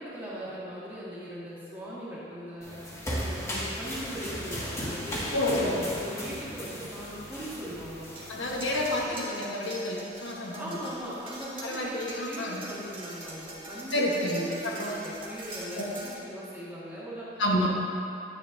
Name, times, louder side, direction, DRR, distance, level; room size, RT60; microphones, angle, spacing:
voice 1, 0.0-2.8 3.2-8.1 8.9-9.3 10.6-17.7, equal, 10° right, -9 dB, 1.8 m, -39 dB
sound 1, 2.6-9.0, equal, 15° left, 1.4 m, -36 dB
voice 2, 5.3-5.8 8.3-10.6 11.6-12.6 13.9-14.5 14.8-14.9 17.4-17.7, left 1 dB, 90° left, -2 dB, 1.2 m, -29 dB
sound 2, 8.1-16.1, right 1 dB, 30° right, 1.4 m, -44 dB
9.9 x 9.2 x 2.7 m, 2.7 s
head